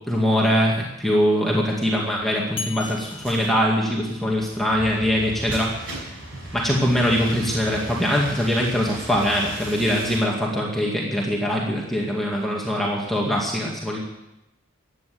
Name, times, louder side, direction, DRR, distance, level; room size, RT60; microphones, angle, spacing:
voice 1, 0.1-6.0 6.5-14.0, equal, ahead, -3 dB, 2.2 m, -22 dB
sound 1, 2.6-4.6, left 5 dB, 30° left, 1.5 m, -38 dB
sound 2, 2.8-10.2, right 1 dB, 75° right, 6.0 m, -37 dB
15.5 x 9.9 x 7.9 m, 0.90 s
head